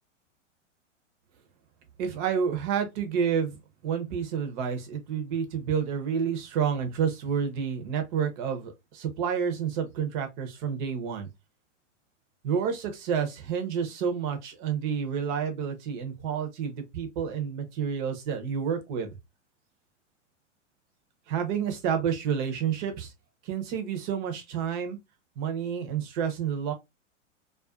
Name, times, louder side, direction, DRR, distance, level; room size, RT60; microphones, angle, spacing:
voice 1, 2.0-3.6 3.8-11.3 12.4-19.2 21.3-23.1 23.4-25.0 25.4-26.7, right 7 dB, 40° right, 0.7 m, -29 dB
2.4 x 2.3 x 2.3 m
hypercardioid pair, 135°, 37 cm